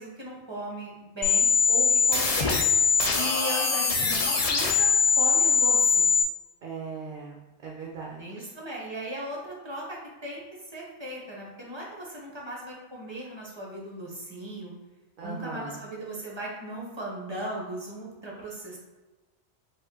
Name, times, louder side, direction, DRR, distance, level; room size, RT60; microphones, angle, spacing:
voice 1, 0.0-2.6 3.1-6.1 8.2-10.4 10.7-14.7 15.2-18.8, right 1 dB, 25° right, -3 dB, 1.0 m, -37 dB
sound 1, 1.2-6.2, left 5 dB, 45° left, 0.5 m, -22 dB
voice 2, 6.6-8.4 15.2-15.8, right 4 dB, 55° right, -2 dB, 0.7 m, -39 dB
5.0 x 2.4 x 3.7 m, 1.2 s
omnidirectional pair, 1.1 m